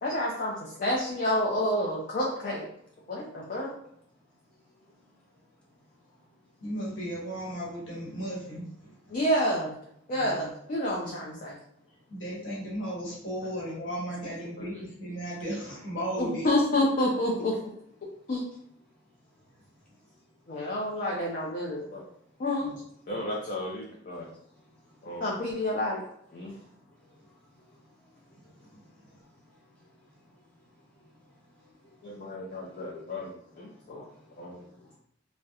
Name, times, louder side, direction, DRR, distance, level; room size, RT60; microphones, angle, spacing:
voice 1, 0.0-2.7 3.1-3.8 9.1-9.8 10.1-11.6 14.6-14.8 16.2-17.5 18.3-18.4 20.5-22.0 22.4-22.7 23.1-24.3 25.0-26.0 26.3-26.6 32.0-34.1 34.4-34.6, left 1 dB, 45° left, -3 dB, 0.4 m, -29 dB
voice 2, 6.6-9.2 10.1-10.5 11.0-11.1 12.1-16.5 22.6-22.8 23.1-23.2 28.7-28.8, equal, 80° left, -5 dB, 1.0 m, -36 dB
voice 3, 31.6-32.0 32.6-33.0 34.0-35.0, left 1 dB, 5° left, -6 dB, 0.7 m, -60 dB
2.7 x 2.0 x 2.3 m, 0.71 s
head